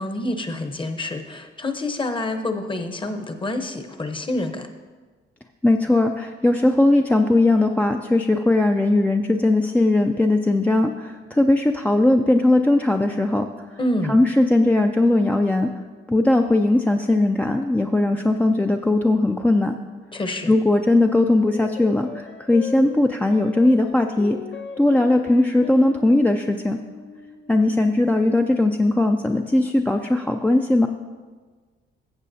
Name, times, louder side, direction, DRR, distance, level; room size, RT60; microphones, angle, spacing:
voice 1, 0.0-4.7 13.8-14.1 20.1-20.5, left 1 dB, 25° left, 7 dB, 0.9 m, -27 dB
voice 2, 5.6-13.5 14.1-15.7 16.1-19.8 20.5-24.4 24.8-26.8 27.5-30.9, left 2 dB, 10° left, 4 dB, 0.4 m, -19 dB
sound 1, 21.3-29.9, left 5 dB, 65° left, 1.0 m, -40 dB
15.0 x 7.3 x 2.7 m, 1.4 s
cardioid pair, 90°, 20 cm